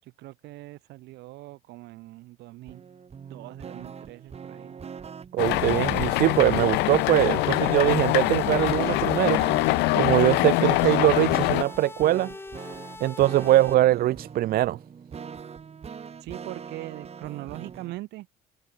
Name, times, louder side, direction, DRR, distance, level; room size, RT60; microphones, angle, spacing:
voice 1, 0.0-2.8 3.2-4.8 16.2-18.3, right 18 dB, 85° right, 7.0 m, -41 dB
sound 1, 2.7-18.0, right 6 dB, 40° right, 7.1 m, -42 dB
voice 2, 5.3-9.4 9.9-12.3 13.0-14.8, right 14 dB, 65° right, 0.6 m, -22 dB
sound 2, 5.4-11.6, left 22 dB, 85° left, 0.4 m, -24 dB
sound 3, 5.5-13.7, left 2 dB, 15° left, 2.3 m, -41 dB
cardioid pair, 110°, 17 cm